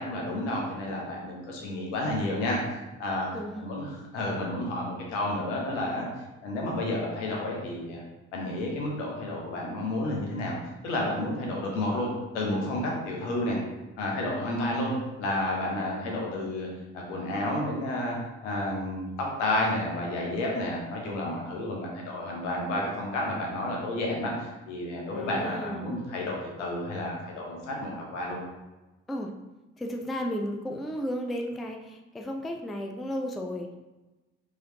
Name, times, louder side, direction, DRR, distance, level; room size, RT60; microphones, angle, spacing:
voice 1, 0.0-3.3 3.6-3.9 4.1-6.1 6.4-8.0 8.3-10.6 10.8-13.6 14.0-14.9 15.2-16.7 16.9-18.2 18.4-28.4, left 1 dB, 75° left, -2 dB, 1.0 m, -31 dB
voice 2, 3.3-3.7 25.1-25.9 29.1-29.3 29.8-33.8, equal, ahead, 2 dB, 0.3 m, -34 dB
4.7 x 3.0 x 2.9 m, 1.1 s
figure-of-eight pair, 45°, 36 cm